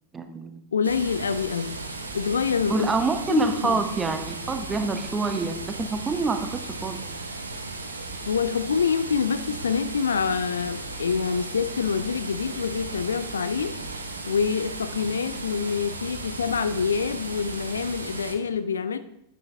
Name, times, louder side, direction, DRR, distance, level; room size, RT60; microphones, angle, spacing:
voice 1, 0.1-0.6 2.7-7.0, right 4 dB, 15° right, 8 dB, 0.9 m, -27 dB
voice 2, 0.7-1.8 2.1-2.9 3.3-3.8 8.3-13.8 14.3-19.0, left 6 dB, 70° left, 13 dB, 0.5 m, -26 dB
sound 1, 0.8-18.3, right 3 dB, 80° right, 1.0 m, -36 dB
9.4 x 8.4 x 3.3 m, 0.79 s
figure-of-eight pair, 90°, 0 cm